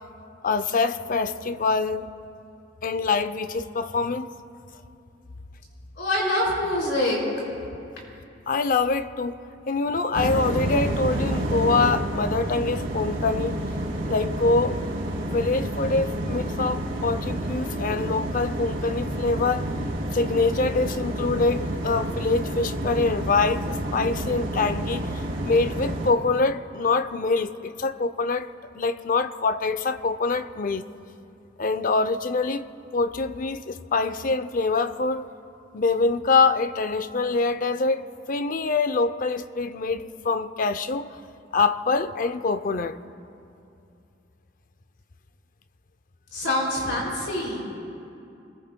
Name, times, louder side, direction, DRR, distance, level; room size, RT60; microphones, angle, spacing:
voice 1, 0.4-2.1 2.8-4.3 8.5-9.4 9.7-13.6 14.1-14.9 15.1-19.7 20.1-28.5 28.7-30.9 31.6-32.7 32.9-35.3 35.7-41.2 41.5-43.0, left 3 dB, 45° left, 0.5 m, -25 dB
voice 2, 6.0-7.2 7.5-7.7 46.3-47.8, left 1 dB, 65° left, 4.4 m, -25 dB
sound 1, 10.1-26.1, right 1 dB, 85° right, 2.7 m, -29 dB
25.5 x 21.5 x 2.2 m
head